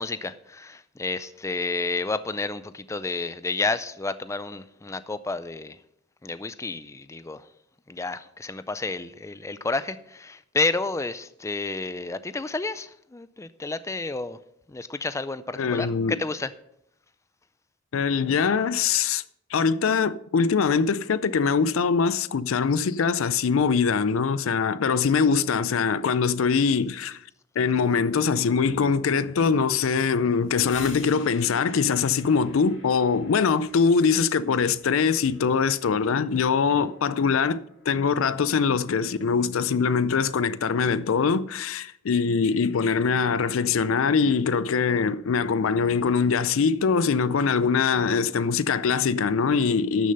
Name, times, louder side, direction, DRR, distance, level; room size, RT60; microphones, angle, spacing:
voice 1, 0.0-5.8 6.2-7.4 7.9-14.4 14.7-16.5, left 3 dB, 15° left, 0.4 m, -30 dB
voice 2, 15.6-16.2 17.9-19.2 19.5-27.2 27.6-50.1, left 5 dB, 85° left, 0.5 m, -23 dB
sound 1, 30.3-40.0, left 5 dB, 65° left, 2.5 m, -50 dB
12.0 x 6.6 x 5.3 m
head